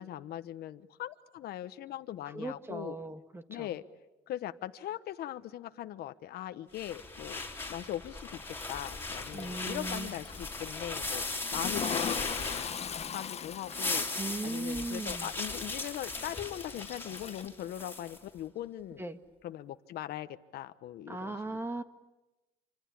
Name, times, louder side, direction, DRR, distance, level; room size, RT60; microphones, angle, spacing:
voice 1, 0.0-3.0 3.5-3.8 4.3-7.4 7.7-8.4 8.7-11.2 11.5-12.7 13.1-14.0 14.4-19.0 19.4-21.4, left 12 dB, 70° left, 10 dB, 1.1 m, -40 dB
voice 2, 2.3-3.7 9.3-10.1 14.2-15.3 19.0-19.2 21.1-21.8, right 2 dB, 15° right, 8 dB, 1.8 m, -38 dB
sound 1, 6.8-13.1 13.5-18.2, left 3 dB, 15° left, 3.9 m, -38 dB
Toilet flush, 8.6-17.5, left 7 dB, 40° left, 1.3 m, -41 dB
27.0 x 26.0 x 8.6 m, 1.0 s
cardioid pair, 110°, 17 cm